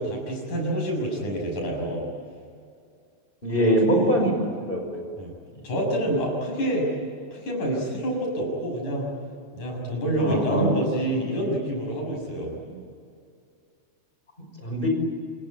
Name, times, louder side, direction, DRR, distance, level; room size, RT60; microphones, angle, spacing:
voice 1, 0.0-2.1 3.5-4.1 5.2-5.3 5.6-6.9 7.3-9.1 9.5-12.5, right 1 dB, 75° left, 0 dB, 8.2 m, -27 dB
voice 2, 3.4-5.0 10.2-10.7 12.7-12.8 14.6-14.9, equal, 15° left, 2 dB, 5.5 m, -23 dB
27.5 x 21.5 x 8.7 m, 2.3 s
omnidirectional pair, 3.5 m